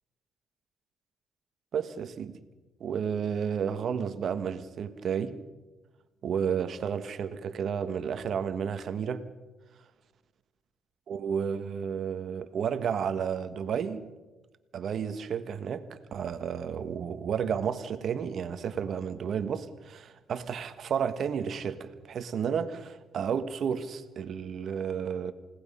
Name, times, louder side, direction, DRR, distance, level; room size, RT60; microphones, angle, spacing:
voice 1, 1.7-2.4 2.8-5.4 6.2-9.3 11.1-14.0 14.7-25.3, right 7 dB, 60° right, 1.5 m, -32 dB
29.0 x 18.0 x 5.6 m
cardioid pair, 90°, 0 cm